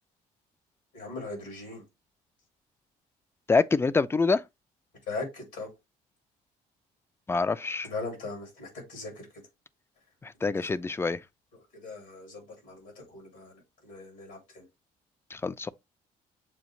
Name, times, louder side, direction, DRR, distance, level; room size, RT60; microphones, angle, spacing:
voice 1, 0.9-1.8 5.1-5.7 7.8-9.3 10.4-10.8 11.7-14.6, left 3 dB, 85° left, 3.0 m, -40 dB
voice 2, 3.5-4.4 7.3-7.9 10.2-11.2 15.3-15.7, left 4 dB, 15° left, 0.3 m, -26 dB
7.2 x 2.4 x 2.9 m
supercardioid pair, 60°, 18 cm